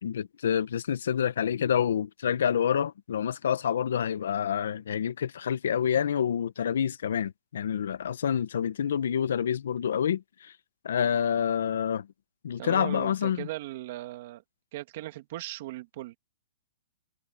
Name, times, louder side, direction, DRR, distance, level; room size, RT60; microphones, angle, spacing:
voice 1, 0.0-10.5 10.8-12.1 12.4-13.5, left 8 dB, 65° left, 1.1 m, -28 dB
voice 2, 12.6-14.4 14.7-16.2, right 16 dB, 35° right, 2.5 m, -38 dB
hypercardioid pair, 175°, 0 cm